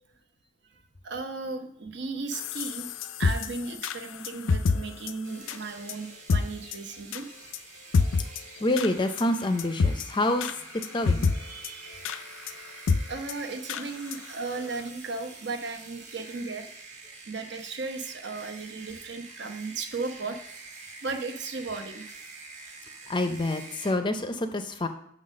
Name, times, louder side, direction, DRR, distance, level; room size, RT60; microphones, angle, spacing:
voice 1, 1.0-2.9 3.2-7.3 11.3-12.0 12.8-16.7 17.3-20.5 21.0-22.0, right 3 dB, 60° right, 6 dB, 0.9 m, -36 dB
sound 1, 2.3-4.8 5.1-5.2 5.5-5.6 5.9-6.0 6.3-6.4 6.7-6.8 7.1-7.2 7.5-7.6 7.9-8.4 8.8-8.9 9.2-9.3 9.6-10.0 10.4-10.5 10.8-11.3 11.6-11.7 12.0-12.2 12.5-12.6 12.9-13.0 13.3-13.4 13.7-13.8 14.1-14.2 14.6-14.7, left 4 dB, 90° left, 0.4 m, -26 dB
sound 2, 5.2-23.9, right 3 dB, 40° right, 1.3 m, -47 dB
voice 2, 8.6-11.3 23.1-24.9, left 1 dB, 25° left, 8 dB, 0.5 m, -27 dB
6.3 x 4.0 x 6.4 m, 0.73 s
head